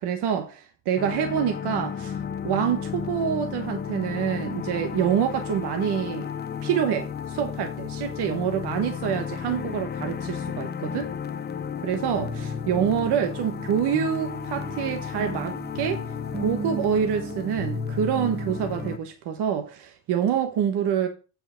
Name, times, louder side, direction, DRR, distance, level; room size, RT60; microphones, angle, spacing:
voice 1, 0.0-2.2 2.4-6.3 6.6-11.1 11.8-16.0 16.4-21.1, right 8 dB, 75° right, 1.0 m, -26 dB
sound 1, 1.0-19.0, left 8 dB, 25° left, 0.4 m, -34 dB
sound 2, 10.4-10.5 11.0-11.1 11.5-11.6 12.2-19.0, equal, 20° right, 1.4 m, -35 dB
8.2 x 4.8 x 4.9 m
cardioid pair, 160°, 39 cm